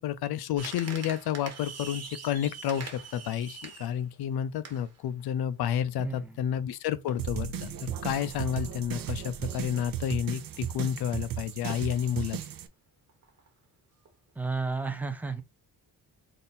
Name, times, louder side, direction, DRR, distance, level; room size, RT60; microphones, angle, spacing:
voice 1, 0.0-12.4, left 9 dB, 75° left, 0.5 m, -31 dB
sound 1, 0.6-5.3 6.0-6.1 6.3-6.7 7.1-8.5 8.9-9.1 9.6-9.8 10.2-10.3 10.5-10.7 11.3-11.4 11.7-12.0 12.5-12.6 13.1-13.5 14.0-14.3 14.6-14.7, right 5 dB, 40° right, 1.2 m, -44 dB
voice 2, 6.0-6.4 14.4-15.4, right 4 dB, 5° right, 0.5 m, -32 dB
sound 2, 7.2-12.7, right 10 dB, 60° right, 0.6 m, -36 dB
3.7 x 2.6 x 4.1 m
cardioid pair, 135°, 38 cm